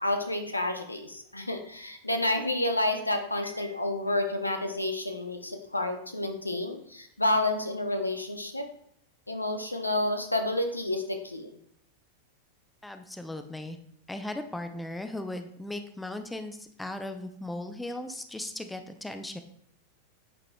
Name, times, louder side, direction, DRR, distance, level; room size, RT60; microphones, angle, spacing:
voice 1, 0.0-8.7 9.3-11.5, left 1 dB, 85° left, 6 dB, 0.6 m, -30 dB
voice 2, 12.8-13.8 14.1-19.4, left 1 dB, 5° left, 7 dB, 0.5 m, -37 dB
8.5 x 4.9 x 2.3 m, 0.67 s
figure-of-eight pair, 90°, 0 cm